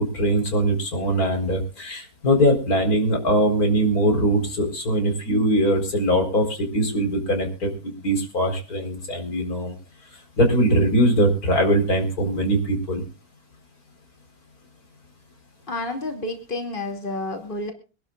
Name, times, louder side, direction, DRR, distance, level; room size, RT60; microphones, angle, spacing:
voice 1, 0.1-9.7 10.4-13.0, right 1 dB, 90° left, 4 dB, 4.7 m, -21 dB
voice 2, 15.7-17.7, left 2 dB, 35° left, 4 dB, 2.7 m, -30 dB
25.0 x 12.0 x 2.4 m, 0.35 s
omnidirectional pair, 1.5 m